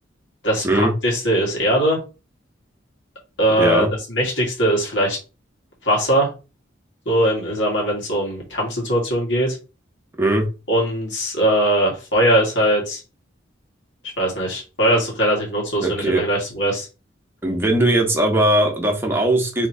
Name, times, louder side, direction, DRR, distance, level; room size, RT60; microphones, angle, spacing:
voice 1, 0.4-2.0 3.4-5.2 5.8-6.3 7.1-9.6 10.7-13.0 14.2-16.9, right 1 dB, 70° left, -2 dB, 2.1 m, -20 dB
voice 2, 3.6-3.9 10.2-10.4 15.8-16.2 17.4-19.7, right 1 dB, 10° right, 1 dB, 1.0 m, -19 dB
3.5 x 3.0 x 4.2 m, 0.30 s
head